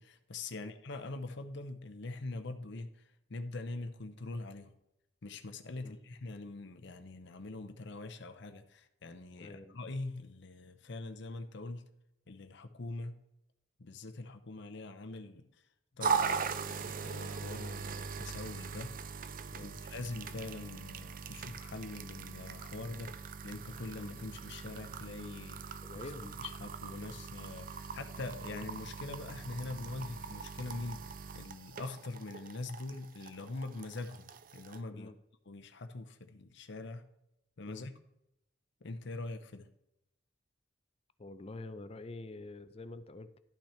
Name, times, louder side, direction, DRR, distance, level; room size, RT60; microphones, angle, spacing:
voice 1, 0.0-3.0 3.3-4.7 5.2-11.8 12.3-13.2 13.8-15.5 16.0-19.0 19.6-26.0 26.4-35.1 35.5-37.0 37.6-37.9 38.8-39.7, left 2 dB, 60° left, 7 dB, 0.7 m, -43 dB
voice 2, 9.4-9.7 19.5-19.8 25.8-26.4 26.9-27.1 34.9-35.1 37.7-37.9 41.2-43.4, left 2 dB, 30° left, 12 dB, 0.6 m, -47 dB
sound 1, 16.0-34.8, right 5 dB, 45° right, 0.5 m, -40 dB
11.5 x 6.0 x 4.3 m, 0.84 s
head